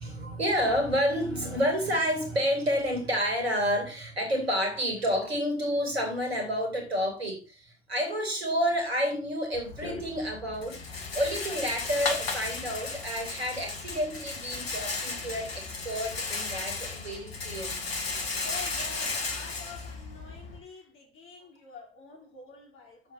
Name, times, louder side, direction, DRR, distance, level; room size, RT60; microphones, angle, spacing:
voice 1, 0.0-17.8, equal, 80° right, 2.8 m, -29 dB
Rattle, 9.5-20.6, left 3 dB, 75° left, 2.0 m, -35 dB
voice 2, 18.4-23.1, left 4 dB, 40° left, 4.7 m, -46 dB
8.6 x 7.3 x 5.9 m
figure-of-eight pair, 65°, 31 cm